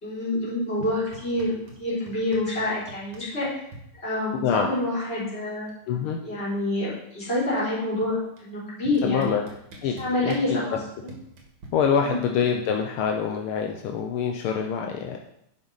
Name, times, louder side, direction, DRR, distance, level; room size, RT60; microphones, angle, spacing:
voice 1, 0.0-3.5 4.0-5.7 6.2-9.4 10.0-10.8 12.0-12.2, left 2 dB, 30° left, -9 dB, 3.9 m, -27 dB
sound 1, 0.8-3.8 5.1-5.2 5.4-5.8 6.1-7.5 8.4-8.5 8.9-11.7, right 2 dB, 80° right, 2.6 m, -45 dB
voice 2, 5.9-6.2 9.0-9.4 9.8-10.0 10.2-10.8 11.7-15.2, left 7 dB, 80° left, 3 dB, 1.6 m, -25 dB
10.5 x 6.0 x 4.0 m, 0.77 s
omnidirectional pair, 2.3 m